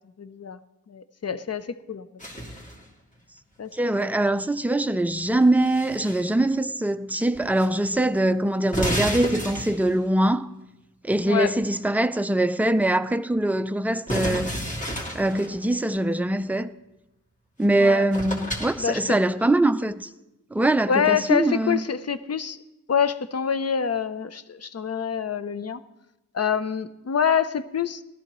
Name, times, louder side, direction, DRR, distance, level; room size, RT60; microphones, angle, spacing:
voice 1, 0.2-0.6 0.9-2.1 3.6-3.7 4.0-4.1 11.3-11.5 17.7-18.0 18.8-19.2 20.9-22.6 22.9-25.8 26.3-28.0, left 7 dB, 50° left, 0.6 m, -26 dB
sound 1, 2.2-2.8 5.2-6.3 7.2-7.7 7.9-8.0 8.6-10.0 14.1-15.5 17.6-17.7 18.1-18.8, equal, 25° left, 2.2 m, -30 dB
voice 2, 3.7-10.5 11.0-14.6 15.1-16.7 17.6-20.1 20.5-21.8, right 1 dB, 5° right, 0.4 m, -23 dB
17.5 x 12.5 x 3.1 m
wide cardioid pair, 100°, 32 cm